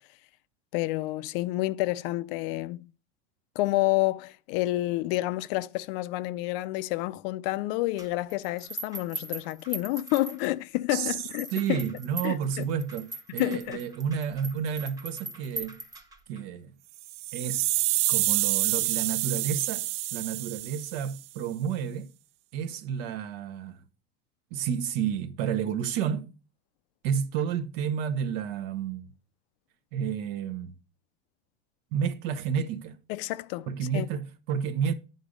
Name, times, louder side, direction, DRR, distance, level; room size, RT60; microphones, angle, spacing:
voice 1, 0.7-2.9 3.6-11.8 12.2-12.7 13.4-13.8 33.1-33.7 33.9-34.1, left 18 dB, 55° left, 0.4 m, -29 dB
sound 1, 8.0-10.8 11.3-16.4, right 2 dB, 10° right, 1.0 m, -40 dB
voice 2, 11.5-15.8 16.3-16.7 17.3-22.1 22.5-23.8 24.5-26.3 27.0-29.1 29.9-30.7 31.9-33.0 33.7-34.9, right 8 dB, 60° right, 0.9 m, -31 dB
sound 2, 17.0-21.2, right 17 dB, 90° right, 0.5 m, -28 dB
10.0 x 4.0 x 5.1 m
supercardioid pair, 150°, 34 cm